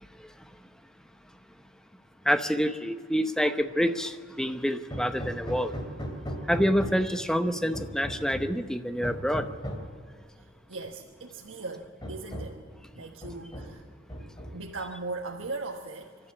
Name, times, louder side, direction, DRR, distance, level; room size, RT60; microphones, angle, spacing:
voice 1, 2.3-5.7 6.5-9.4, equal, 5° left, 0.8 m, -27 dB
Hammer, 4.9-7.2 7.7-8.6 9.0-9.9 11.0-11.1 11.5-11.6 12.0-12.7 13.2-13.8 14.1-14.8, equal, 25° left, 2.7 m, -37 dB
voice 2, 10.4-12.6 12.9-13.8 14.5-16.1, right 3 dB, 90° right, 1.3 m, -38 dB
27.0 x 12.0 x 8.4 m
head